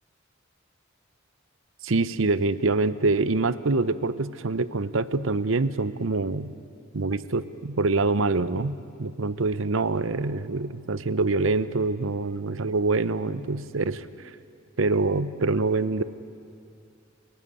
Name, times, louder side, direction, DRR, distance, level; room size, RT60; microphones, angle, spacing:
voice 1, 1.8-6.5 6.9-14.1 14.8-16.0, right 3 dB, 75° right, 15 dB, 0.8 m, -25 dB
27.5 x 16.5 x 10.0 m, 2.5 s
head